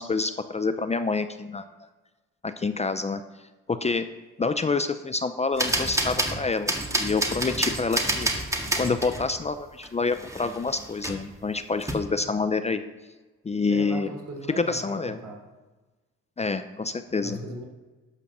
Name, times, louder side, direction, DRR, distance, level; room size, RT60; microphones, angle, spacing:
voice 1, 0.0-1.7 2.4-3.2 3.7-4.1 4.4-8.3 8.8-12.8 13.4-14.1 14.5-15.2 16.4-17.4, left 4 dB, 20° left, 10 dB, 0.6 m, -27 dB
sound 1, 5.6-9.3 9.8-9.9 10.1-11.3 11.8-11.9, right 1 dB, 10° right, 1.7 m, -28 dB
voice 2, 13.7-14.8 15.2-15.4 17.2-17.6, right 2 dB, 60° right, -1 dB, 3.7 m, -37 dB
12.0 x 5.1 x 6.8 m, 1.2 s
cardioid pair, 90°, 30 cm